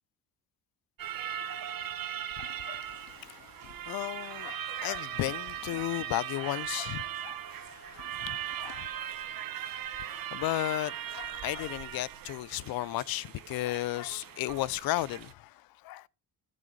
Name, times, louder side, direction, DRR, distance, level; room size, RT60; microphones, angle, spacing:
sound 1, 1.0-15.3, right 10 dB, 65° right, 1.1 m, -39 dB
voice 1, 2.4-8.9 10.0-16.1, left 16 dB, 75° left, 0.5 m, -35 dB
15.0 x 6.5 x 3.9 m
cardioid pair, 105°, 36 cm